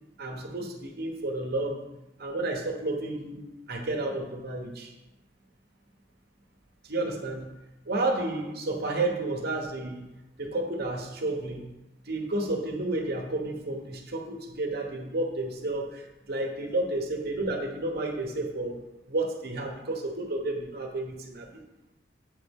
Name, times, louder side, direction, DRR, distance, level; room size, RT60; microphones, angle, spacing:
voice 1, 0.2-4.9 6.8-7.5 7.9-10.1 10.4-11.7 12.0-18.8 19.1-21.6, right 2 dB, 55° right, 1 dB, 1.0 m, -31 dB
7.5 x 4.1 x 3.6 m, 0.92 s
head